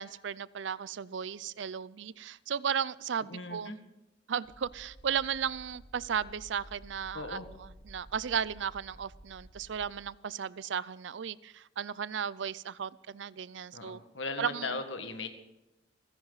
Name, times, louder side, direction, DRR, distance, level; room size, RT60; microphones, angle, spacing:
voice 1, 0.0-3.8 4.3-7.4 7.9-14.0 14.4-14.7, right 7 dB, 75° right, 20 dB, 0.5 m, -35 dB
voice 2, 3.3-3.8 7.1-7.5 13.7-15.3, left 3 dB, 85° left, 7 dB, 1.7 m, -38 dB
sound 1, 4.4-9.9, equal, 10° left, 3.6 m, -53 dB
27.5 x 10.5 x 4.1 m, 0.94 s
head